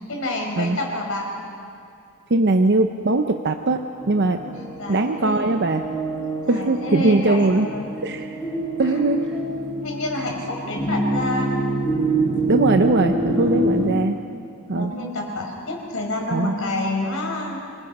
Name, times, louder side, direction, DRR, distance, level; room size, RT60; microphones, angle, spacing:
voice 1, 0.0-1.3 4.4-5.5 6.4-7.8 8.8-9.1 9.8-11.8 13.3-13.8 14.7-17.6, left 1 dB, 65° left, 0 dB, 4.6 m, -28 dB
voice 2, 2.3-4.4 4.9-5.9 6.5-7.7 8.0-8.4 8.8-9.2 12.5-14.2 14.7-14.9 16.3-16.5, right 2 dB, 50° right, 6 dB, 0.7 m, -20 dB
sound 1, 4.0-13.9, right 1 dB, 10° left, 6.8 m, -26 dB
26.5 x 21.0 x 5.4 m, 2.5 s
head